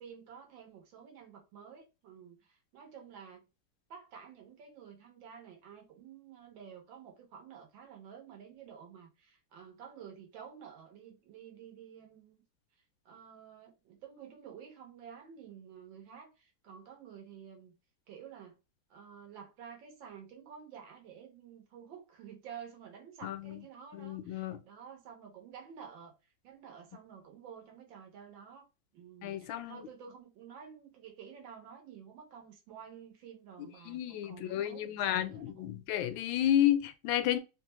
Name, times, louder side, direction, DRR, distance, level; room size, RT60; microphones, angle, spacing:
voice 1, 0.0-3.4 3.9-12.4 13.1-17.7 18.1-18.6 18.9-26.1 26.4-28.7 28.9-35.8, right 7 dB, 85° right, 1.8 m, -51 dB
voice 2, 23.2-23.6 23.9-24.6 29.2-29.8 33.9-37.4, left 11 dB, 85° left, 1.3 m, -31 dB
3.9 x 2.3 x 3.0 m
omnidirectional pair, 2.0 m